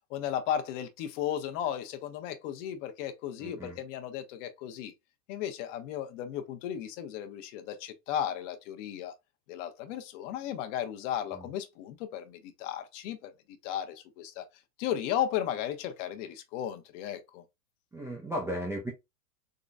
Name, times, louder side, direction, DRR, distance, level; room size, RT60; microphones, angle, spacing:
voice 1, 0.1-4.9 5.3-9.1 9.5-13.3 13.6-14.4 14.8-17.4, left 10 dB, 45° left, 1.0 m, -35 dB
voice 2, 3.4-3.8 11.3-11.5 17.9-18.9, equal, 5° right, 0.4 m, -35 dB
3.9 x 3.0 x 2.5 m
hypercardioid pair, 120°, 49 cm